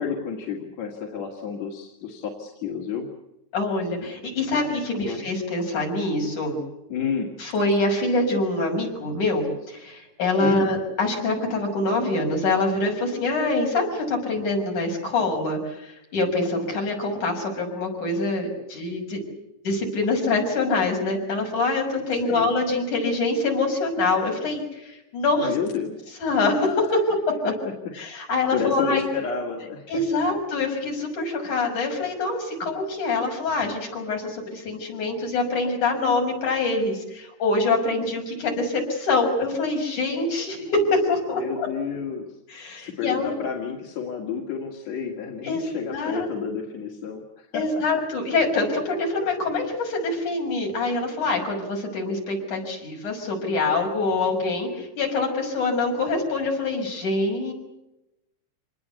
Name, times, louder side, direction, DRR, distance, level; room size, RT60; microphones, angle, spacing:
voice 1, 0.0-3.1 5.0-5.3 6.9-7.3 10.4-10.7 22.1-22.5 25.4-25.9 27.4-27.5 28.3-30.0 41.3-42.4 42.8-47.6, left 6 dB, 65° left, 1 dB, 3.6 m, -31 dB
voice 2, 3.5-6.6 7.4-19.2 19.6-25.5 26.2-27.2 27.4-27.5 28.0-29.1 29.9-41.7 42.5-43.3 45.4-45.6 45.9-46.3 47.5-57.5, left 2 dB, 85° left, 1 dB, 7.7 m, -25 dB
27.0 x 20.0 x 8.4 m, 0.91 s
omnidirectional pair, 3.4 m